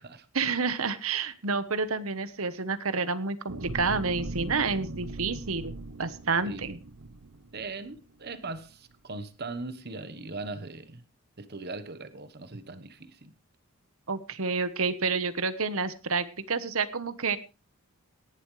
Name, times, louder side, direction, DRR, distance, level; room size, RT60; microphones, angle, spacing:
voice 1, 0.3-5.7 6.0-6.8 14.1-17.4, right 4 dB, 70° right, 1.2 m, -29 dB
sound 1, 3.5-8.0 8.5-8.6, right 2 dB, 85° right, 0.9 m, -39 dB
voice 2, 7.5-11.0 11.4-13.3, right 3 dB, 45° right, 1.2 m, -39 dB
18.0 x 11.0 x 3.3 m
head